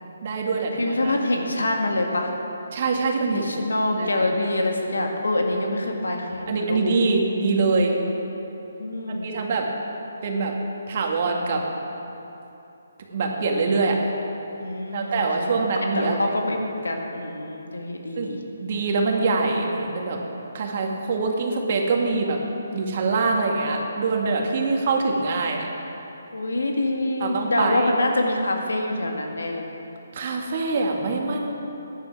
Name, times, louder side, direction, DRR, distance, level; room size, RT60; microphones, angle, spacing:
voice 1, 0.2-1.1 2.7-3.6 3.9-4.3 5.5-5.7 6.5-8.0 9.2-9.7 10.2-10.5 10.9-11.6 13.1-14.0 14.9-16.3 18.2-18.3 18.6-20.2 20.5-22.4 22.7-25.7 27.2-27.9 30.1-31.5, right 3 dB, 45° right, 1 dB, 1.8 m, -24 dB
voice 2, 0.8-2.3 3.3-6.9 8.8-9.3 14.6-15.7 15.9-16.6 16.8-18.4 26.3-29.6, left 1 dB, 85° left, 2 dB, 1.8 m, -25 dB
15.0 x 10.5 x 4.8 m, 3.0 s
figure-of-eight pair, 150°, 0 cm